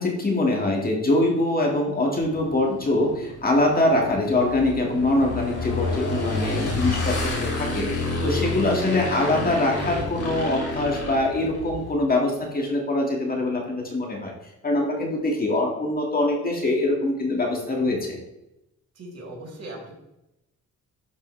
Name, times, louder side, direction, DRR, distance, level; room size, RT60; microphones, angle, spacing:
voice 1, 0.0-14.3 14.6-18.2, left 2 dB, 30° left, 0 dB, 1.9 m, -23 dB
Motorcycle / Engine, 2.2-11.9, left 2 dB, 75° left, 2.9 m, -29 dB
voice 2, 18.9-19.9, right 1 dB, 55° right, -2 dB, 2.9 m, -38 dB
11.5 x 4.3 x 3.2 m, 0.89 s
cardioid pair, 90°, 30 cm